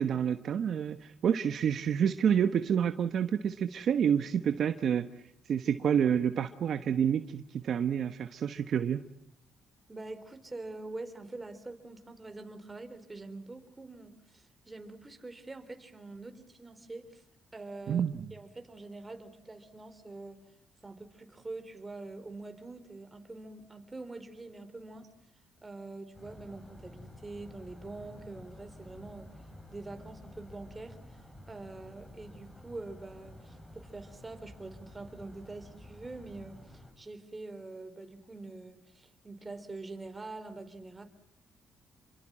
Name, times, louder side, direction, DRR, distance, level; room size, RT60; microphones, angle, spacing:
voice 1, 0.0-5.0 5.5-9.1 17.9-18.3, right 8 dB, 60° right, 9 dB, 1.2 m, -28 dB
voice 2, 9.9-17.2 17.5-20.5 20.8-25.1 25.6-31.2 31.5-41.0, right 2 dB, 20° right, 8 dB, 4.0 m, -45 dB
sound 1, 26.1-36.9, left 1 dB, 15° left, 6.0 m, -51 dB
28.5 x 24.0 x 7.6 m, 0.78 s
cardioid pair, 90°, 0 cm